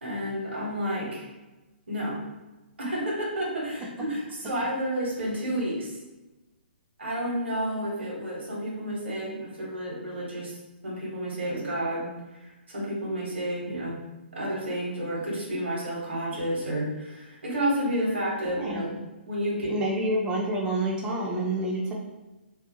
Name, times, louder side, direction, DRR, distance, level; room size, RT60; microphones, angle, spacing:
voice 1, 0.0-1.3 1.9-2.2 2.8-5.9 7.0-10.5 10.8-14.0 14.3-19.0 19.3-20.1, right 1 dB, 80° right, -3 dB, 1.0 m, -30 dB
voice 2, 19.7-21.9, right 1 dB, 15° right, -3 dB, 0.3 m, -28 dB
2.5 x 2.1 x 2.7 m, 1.1 s
hypercardioid pair, 135°, 6 cm